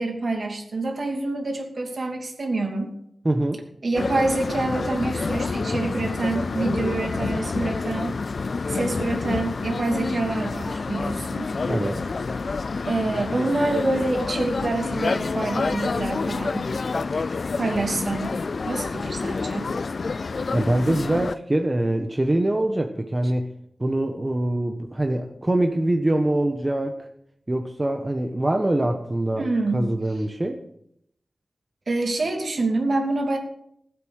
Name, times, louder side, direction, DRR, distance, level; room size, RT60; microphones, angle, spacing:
voice 1, 0.0-3.0 3.8-8.2 8.7-11.5 12.9-16.7 17.5-19.7 29.3-29.9 31.9-33.4, right 2 dB, 60° right, 3 dB, 2.8 m, -26 dB
voice 2, 3.2-3.6 11.7-12.0 20.5-23.5 23.8-27.1 27.5-29.5 29.7-30.6, right 1 dB, 25° right, 4 dB, 1.2 m, -24 dB
sound 1, 3.9-21.4, left 4 dB, 65° left, 0.4 m, -28 dB
16.0 x 8.3 x 6.5 m, 0.73 s
wide cardioid pair, 75°, 0 cm